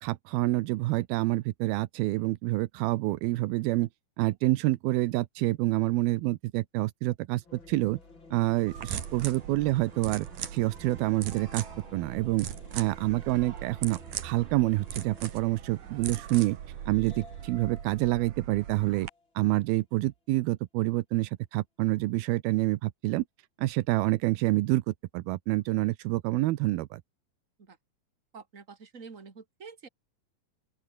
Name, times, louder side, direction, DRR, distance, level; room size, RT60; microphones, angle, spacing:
voice 1, 0.0-3.9 4.2-8.0 8.3-10.3 10.5-11.6 11.9-12.5 12.7-16.6 16.9-19.1 19.4-23.2 23.6-27.0, right 18 dB, 85° right, 2.7 m, -27 dB
sound 1, 7.4-19.6, left 3 dB, 30° left, 5.7 m, -54 dB
sound 2, 8.7-19.1, right 9 dB, 60° right, 3.4 m, -40 dB
voice 2, 28.3-29.9, right 5 dB, 20° right, 3.0 m, -47 dB
open air
omnidirectional pair, 4.3 m